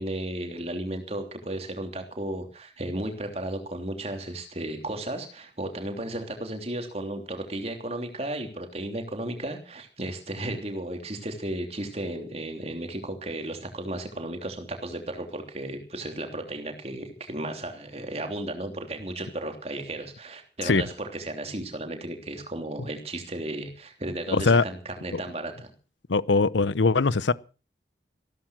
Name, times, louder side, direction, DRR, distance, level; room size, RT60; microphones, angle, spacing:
voice 1, 0.0-25.7, right 1 dB, 35° right, 3.2 m, -34 dB
voice 2, 24.3-24.6 25.1-25.2 26.1-27.3, left 3 dB, 90° left, 0.8 m, -21 dB
15.5 x 13.5 x 6.3 m
head